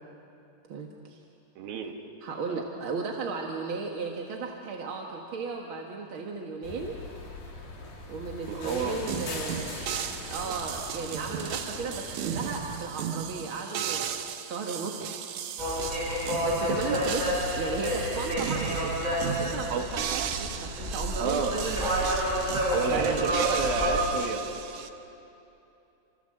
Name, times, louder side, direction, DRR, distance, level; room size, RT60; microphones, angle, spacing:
voice 1, 0.7-1.2 2.2-7.0 8.1-9.7 10.3-15.0 16.4-21.9 22.9-23.3, right 4 dB, 45° right, 1 dB, 1.9 m, -35 dB
voice 2, 1.6-2.0 2.5-2.6 8.5-9.1 19.7-19.8 21.2-21.6 22.7-24.4, right 6 dB, 80° right, 3 dB, 3.7 m, -30 dB
sound 1, 6.6-12.8, left 3 dB, 75° left, 5.5 m, -41 dB
sound 2, 9.1-24.9, right 9 dB, 65° right, 2.3 m, -36 dB
sound 3, 15.6-24.0, equal, 10° right, 5.7 m, -29 dB
29.0 x 26.5 x 7.7 m, 2.8 s
omnidirectional pair, 4.1 m